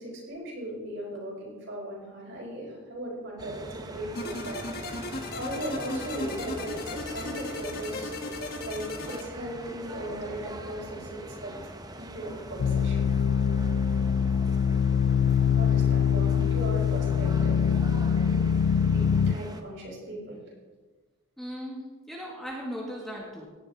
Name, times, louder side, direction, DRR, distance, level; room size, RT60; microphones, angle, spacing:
voice 1, 0.0-5.1 5.4-8.1 8.6-11.5 12.0-13.1 15.6-17.7 17.9-18.3 18.9-20.4, right 1 dB, 55° right, -3 dB, 5.2 m, -38 dB
sound 1, 3.4-19.6, right 1 dB, 20° right, 0.8 m, -43 dB
sound 2, 4.2-9.2, left 2 dB, 45° left, 1.4 m, -36 dB
sound 3, 12.6-19.3, left 7 dB, 60° left, 0.3 m, -24 dB
voice 2, 21.4-23.4, equal, ahead, -4 dB, 2.2 m, -37 dB
17.5 x 11.5 x 3.8 m, 1.3 s
head